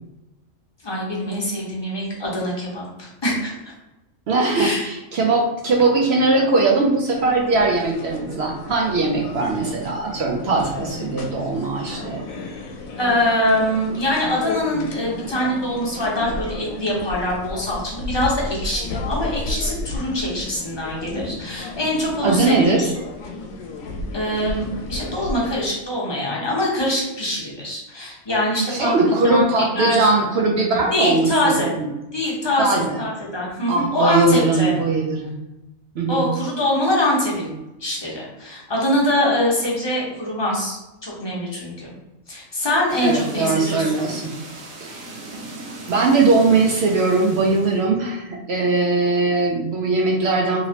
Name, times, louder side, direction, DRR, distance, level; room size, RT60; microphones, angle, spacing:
voice 1, 0.8-3.7 4.5-4.9 13.0-22.8 24.1-30.1 30.9-31.7 32.1-34.8 36.1-37.5 37.8-41.9 42.3-44.0, left 1 dB, 25° left, -4 dB, 0.7 m, -23 dB
voice 2, 4.3-12.2 22.2-22.9 28.7-31.9 32.6-33.0 33.7-35.3 36.0-36.2 43.0-44.3 44.8-45.1 45.9-50.7, right 3 dB, 65° right, 0 dB, 0.7 m, -20 dB
sound 1, 7.1-25.6, left 2 dB, 80° left, 1.0 m, -33 dB
sound 2, 42.9-47.9, right 2 dB, 85° right, 1.1 m, -38 dB
3.0 x 2.9 x 2.8 m, 0.97 s
omnidirectional pair, 1.4 m